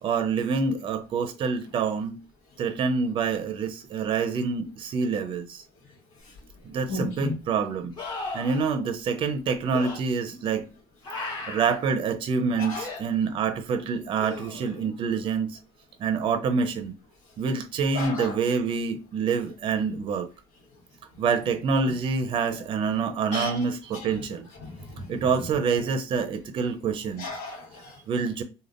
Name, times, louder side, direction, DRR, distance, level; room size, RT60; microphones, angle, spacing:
voice 1, 0.0-2.2 2.6-5.6 6.7-7.9 8.3-10.7 11.5-15.6 16.0-17.0 17.4-20.3 21.2-24.5 25.1-27.3 28.1-28.4, right 5 dB, 45° right, 0.5 m, -26 dB
sound 1, 6.4-6.5 8.0-8.6 9.7-10.0 11.0-11.8 12.8-13.0 14.2-14.9 18.0-18.1, left 3 dB, 40° left, 1.1 m, -36 dB
voice 2, 6.9-7.4 12.6-12.9 17.9-18.4 23.3-23.6 23.9-24.1 24.6-25.2 27.2-28.0, left 2 dB, 75° left, 1.2 m, -34 dB
3.4 x 2.1 x 2.4 m
cardioid pair, 135°, 12 cm